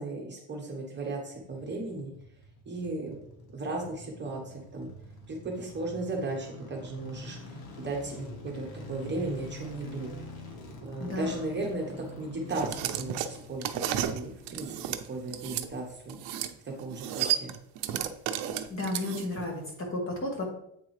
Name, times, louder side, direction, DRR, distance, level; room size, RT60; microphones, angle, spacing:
voice 1, 0.0-2.1 2.7-3.2 3.5-4.9 5.3-7.4 7.8-10.1 10.8-16.2 16.6-17.5, right 2 dB, 25° right, 0 dB, 1.0 m, -36 dB
sound 1, 1.2-16.5 16.7-16.8, left 2 dB, 65° left, 1.3 m, -46 dB
voice 2, 11.0-11.5 18.7-20.5, left 1 dB, 30° left, 0 dB, 1.6 m, -33 dB
sound 2, 12.5-15.7 16.1-16.5 16.8-19.4, right 11 dB, 80° right, 0.6 m, -32 dB
8.3 x 3.8 x 3.2 m, 0.73 s
cardioid pair, 145°, 40 cm